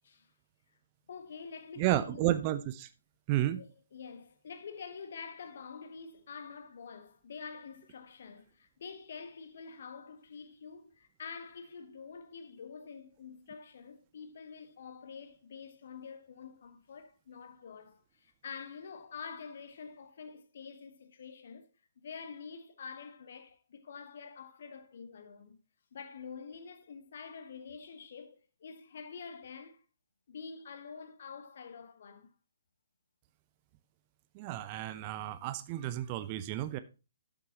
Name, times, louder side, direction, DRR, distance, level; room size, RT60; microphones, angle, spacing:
voice 1, 1.1-2.4 3.5-21.7 22.0-25.6 25.9-29.8 30.3-32.3, left 5 dB, 50° left, 1.2 m, -47 dB
voice 2, 1.8-2.9 3.3-3.6 34.4-36.8, right 14 dB, 30° right, 0.6 m, -32 dB
12.0 x 7.3 x 2.9 m
figure-of-eight pair, 130°, 0 cm